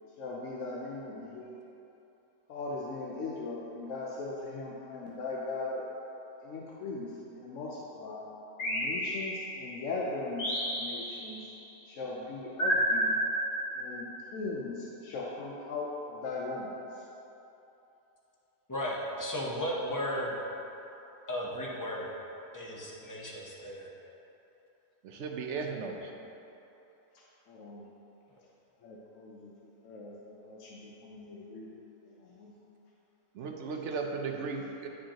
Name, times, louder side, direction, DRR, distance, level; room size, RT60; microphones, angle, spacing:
voice 1, 0.2-1.6 2.5-5.8 6.4-8.2 8.6-11.4 11.9-13.2 13.8-15.9 16.2-16.7 27.5-27.8 28.8-29.5 29.8-31.7 32.4-32.5, left 3 dB, 60° left, -4 dB, 0.9 m, -39 dB
sound 1, 8.6-9.7 10.4-11.5 12.6-14.1, equal, 90° left, 2.2 m, -31 dB
voice 2, 18.7-20.3 21.3-22.1 22.5-23.9, equal, 20° left, -4 dB, 0.5 m, -35 dB
voice 3, 25.0-26.1 33.3-34.9, right 4 dB, 65° right, 2 dB, 0.8 m, -36 dB
9.8 x 5.1 x 2.9 m, 3.0 s
omnidirectional pair, 1.7 m